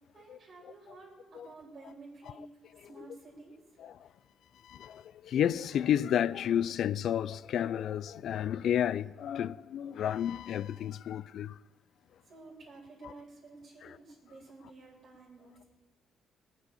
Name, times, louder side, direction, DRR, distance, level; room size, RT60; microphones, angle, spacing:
voice 1, 0.1-3.6 12.2-15.6, right 3 dB, 45° right, 3.5 m, -52 dB
voice 2, 4.6-11.6 13.0-13.1 13.8-13.9, left 10 dB, 70° left, 0.3 m, -31 dB
17.5 x 6.2 x 8.5 m
cardioid pair, 90°, 0 cm